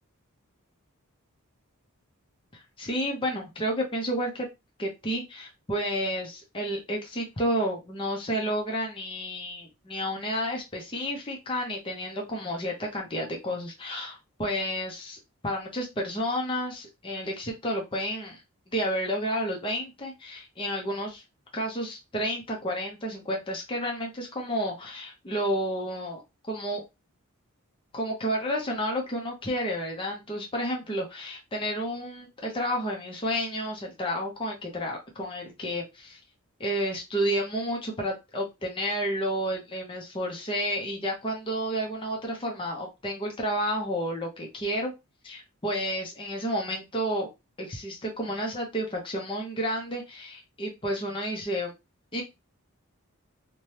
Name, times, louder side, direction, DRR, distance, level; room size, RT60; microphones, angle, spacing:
voice 1, 2.5-4.5 4.8-15.2 15.4-21.2 21.5-26.2 26.5-26.8 27.9-36.2 36.6-44.9 45.2-47.3 47.6-51.7 52.1-52.2, equal, 25° left, 0 dB, 0.6 m, -31 dB
2.7 x 2.2 x 3.2 m, 0.24 s
head